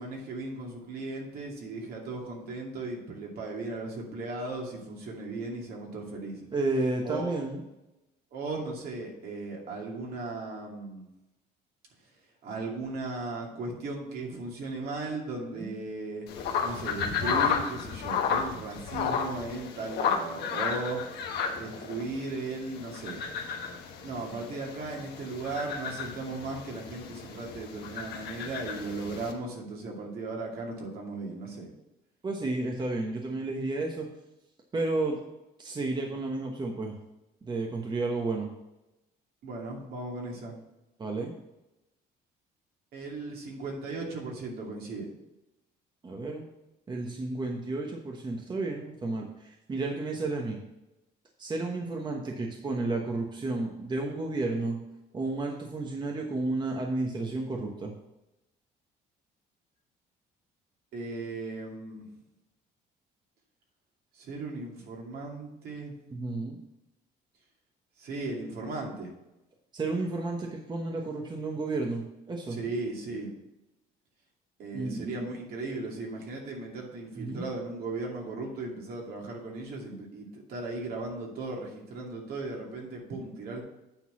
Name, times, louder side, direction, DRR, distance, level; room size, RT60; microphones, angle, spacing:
voice 1, 0.0-6.5 7.0-7.4 8.3-11.0 12.4-16.3 16.6-21.0 21.5-23.3 24.0-31.7 39.4-40.6 42.9-45.1 60.9-62.0 64.2-65.9 68.0-69.1 72.5-73.3 74.6-83.6, right 3 dB, 65° right, -1 dB, 2.5 m, -37 dB
voice 2, 6.5-7.6 15.5-15.8 32.2-34.1 34.7-35.2 35.6-36.9 37.4-38.5 41.0-41.3 46.0-46.4 46.9-50.6 51.4-54.8 55.1-57.9 66.1-66.6 69.7-72.6 74.7-75.3 77.1-77.5, right 2 dB, 25° right, 1 dB, 1.1 m, -32 dB
sound 1, 16.3-29.3, left 6 dB, 75° left, 1.3 m, -33 dB
8.9 x 4.0 x 6.1 m, 0.92 s
cardioid pair, 110°, 17 cm